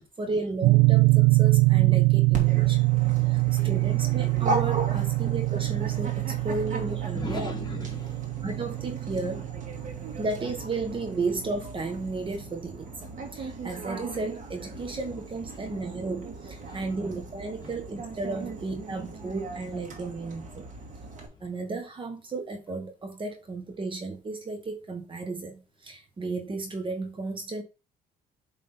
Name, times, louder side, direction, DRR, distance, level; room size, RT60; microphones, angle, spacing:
voice 1, 0.0-2.8 3.3-7.5 8.4-9.4 10.2-20.7 21.4-27.6, right 3 dB, 30° right, 1.3 m, -34 dB
sound 1, 0.6-10.8, right 24 dB, 80° right, 0.4 m, -24 dB
Dog, 2.3-21.3, right 3 dB, 50° right, 2.2 m, -38 dB
voice 2, 3.2-3.7 7.1-8.5 9.8-10.2 14.7-14.9 16.6-17.0 17.6-17.8 18.4-18.6 20.8-21.4, left 2 dB, 25° left, 2.0 m, -41 dB
7.6 x 3.8 x 4.0 m
cardioid pair, 110°, 17 cm